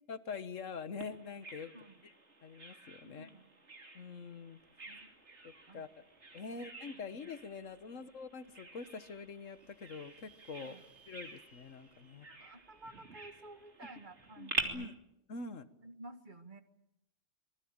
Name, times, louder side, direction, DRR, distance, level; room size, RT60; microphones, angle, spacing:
voice 1, 0.1-1.7 2.0-2.1 2.4-3.3 4.0-4.6 5.4-5.9 6.3-10.8 11.1-12.3 14.4-14.9 15.3-15.7, left 4 dB, 85° left, 12 dB, 1.8 m, -45 dB
Bird vocalization bird call bird song, 1.0-14.6, right 3 dB, 60° right, 3.2 m, -47 dB
voice 2, 1.7-2.1 3.0-3.5 4.9-5.1 5.7-5.9 6.5-6.7 7.9-8.0 10.6-10.8 12.0-14.9 15.8-16.6, right 2 dB, 40° right, 8 dB, 1.9 m, -53 dB
sound 1, 4.6-4.7 5.0-7.1 7.7-7.8 8.1-8.2 8.4-8.5 9.1-13.6, right 5 dB, 20° right, 6.6 m, -67 dB
25.0 x 21.0 x 8.8 m, 0.86 s
omnidirectional pair, 1.3 m